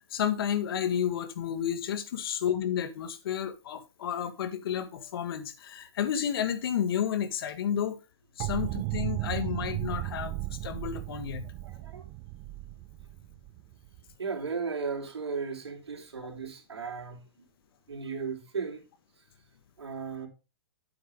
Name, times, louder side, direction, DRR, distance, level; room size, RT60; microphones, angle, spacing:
voice 1, 0.1-8.0 8.4-10.3 10.6-11.5, left 9 dB, 60° left, 1.6 m, -31 dB
sound 1, 8.4-14.1, right 18 dB, 35° right, 0.5 m, -35 dB
voice 2, 11.6-12.0 14.2-17.5 17.9-18.8 19.8-20.3, right 5 dB, 75° right, 3.8 m, -36 dB
9.3 x 7.9 x 3.6 m
hypercardioid pair, 115°, 14 cm